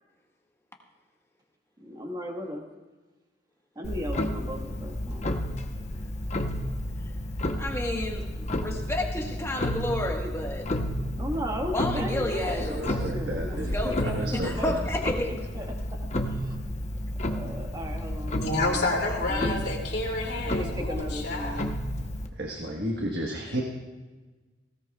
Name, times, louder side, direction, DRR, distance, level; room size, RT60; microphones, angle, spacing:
voice 1, 1.8-2.7 3.7-5.3 11.2-14.8 15.2-16.0 16.2-16.6 17.2-18.8 19.3-19.6 20.4-21.7, equal, 20° right, 1 dB, 1.6 m, -36 dB
Clock, 3.8-22.3, left 1 dB, 40° left, 1.0 m, -31 dB
voice 2, 7.6-10.7 11.7-12.9 13.6-14.1 14.4-15.3 23.4-23.6, left 1 dB, 15° left, 1 dB, 1.5 m, -31 dB
voice 3, 12.7-13.8 14.1-14.8 22.4-23.6, right 1 dB, 60° right, 0 dB, 1.4 m, -32 dB
voice 4, 18.3-21.7, left 2 dB, 65° left, 0 dB, 2.8 m, -29 dB
19.0 x 17.0 x 2.4 m, 1.3 s
head